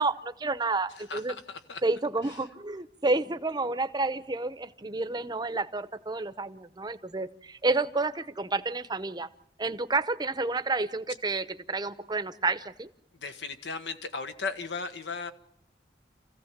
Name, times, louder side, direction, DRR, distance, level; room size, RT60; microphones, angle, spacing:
voice 1, 0.0-1.3 1.8-9.3 9.6-12.9, right 3 dB, 25° right, 12 dB, 0.7 m, -30 dB
voice 2, 1.0-1.8 2.3-2.4 13.1-15.3, left 4 dB, 90° left, 8 dB, 1.4 m, -36 dB
27.5 x 15.5 x 7.3 m, 0.79 s
head